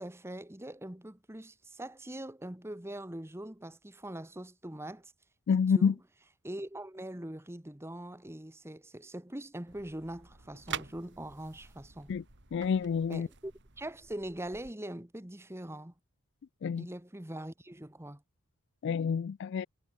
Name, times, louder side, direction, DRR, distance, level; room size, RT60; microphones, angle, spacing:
voice 1, 0.0-5.1 5.5-6.0 6.4-12.1 13.1-15.9 16.8-18.2, right 1 dB, 10° right, 1.2 m, -42 dB
voice 2, 5.5-5.9 12.1-12.2 12.5-13.3 16.6-16.9 18.8-19.7, left 6 dB, 55° left, 0.3 m, -28 dB
sound 1, 9.7-14.7, right 7 dB, 55° right, 2.8 m, -46 dB
head